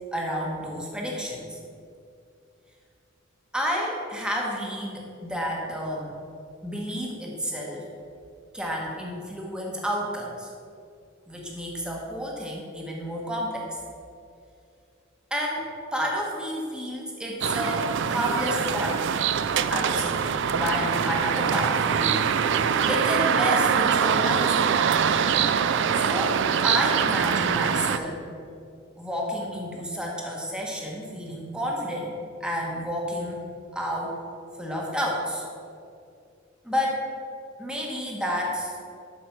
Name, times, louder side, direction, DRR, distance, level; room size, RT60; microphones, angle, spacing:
voice 1, 0.1-1.6 3.5-6.1 6.6-7.8 8.5-10.5 11.3-13.7 15.3-19.1 19.7-20.2 20.5-22.5 22.9-24.7 25.9-28.2 29.0-32.1 32.4-33.5 33.7-34.1 34.6-35.5 36.6-37.0 37.6-38.7, equal, 5° right, -2 dB, 1.3 m, -30 dB
sound 1, 17.4-28.0, right 7 dB, 65° right, 0.4 m, -23 dB
12.0 x 4.6 x 5.9 m, 2.5 s
head